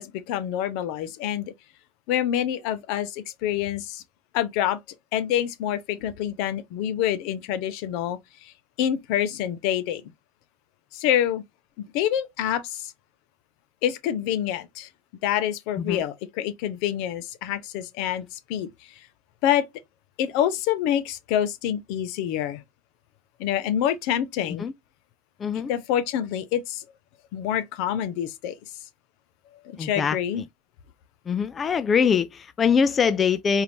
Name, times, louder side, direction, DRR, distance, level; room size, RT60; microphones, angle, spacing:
voice 1, 0.0-1.5 2.1-4.0 4.3-4.8 5.1-8.5 8.8-10.0 10.9-11.4 11.8-12.9 13.8-14.9 15.2-18.7 19.4-19.7 20.2-22.6 23.4-24.6 25.7-26.8 27.3-28.5 29.6-30.4, left 10 dB, 70° left, 0.7 m, -26 dB
voice 2, 29.8-30.2 31.3-33.6, left 6 dB, 30° left, 0.4 m, -23 dB
4.4 x 2.6 x 3.5 m
supercardioid pair, 115°, 0 cm